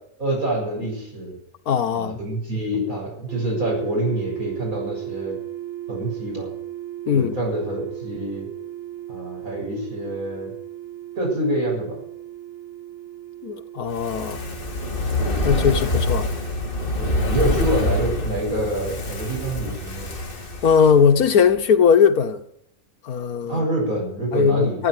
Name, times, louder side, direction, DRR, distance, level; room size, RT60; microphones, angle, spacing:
voice 1, 0.2-1.3 1.9-5.4 5.9-6.5 7.1-8.5 9.1-10.5 11.2-12.0 15.2-15.8 16.9-20.1 23.4-24.8, right 1 dB, 70° right, 7.6 m, -26 dB
voice 2, 1.7-2.2 7.1-7.4 13.4-14.4 15.4-16.3 20.6-22.4 23.0-23.6 24.3-24.9, left 6 dB, 85° left, 1.6 m, -19 dB
sound 1, 3.3-21.2, right 13 dB, 45° right, 2.4 m, -37 dB
Fire, 13.9-21.2 21.5-21.6, left 1 dB, 40° left, 1.9 m, -26 dB
15.5 x 9.3 x 9.3 m
omnidirectional pair, 1.5 m